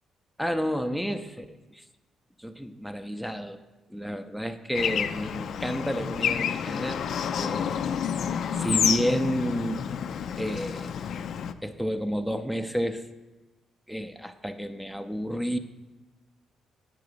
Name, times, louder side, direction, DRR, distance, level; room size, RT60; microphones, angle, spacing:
voice 1, 0.4-1.8 2.4-3.6 3.9-7.0 7.4-7.9 8.6-9.8 10.3-10.9 11.6-13.0 13.9-15.6, equal, ahead, 8 dB, 0.5 m, -30 dB
Bird / Traffic noise roadway noise, 4.7-11.5, left 8 dB, 65° left, 0.4 m, -29 dB
9.5 x 3.8 x 6.7 m, 1.2 s
cardioid pair, 90°, 0 cm